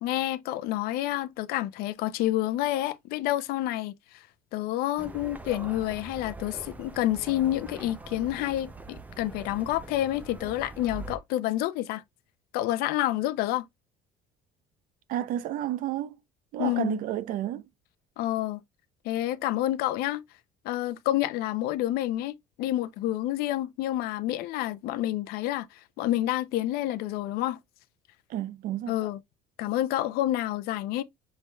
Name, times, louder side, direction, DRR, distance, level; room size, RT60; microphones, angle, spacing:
voice 1, 0.0-4.2 4.5-12.0 12.5-13.6 16.6-17.0 18.2-18.6 19.0-20.2 20.6-27.6 28.9-29.2 29.6-31.0, left 14 dB, 75° left, 0.6 m, -29 dB
sound 1, 5.0-11.2, right 3 dB, 10° right, 0.5 m, -43 dB
voice 2, 15.1-16.2 16.5-17.6 28.3-28.9, right 12 dB, 60° right, 0.6 m, -31 dB
6.8 x 3.3 x 2.2 m
cardioid pair, 150°, 16 cm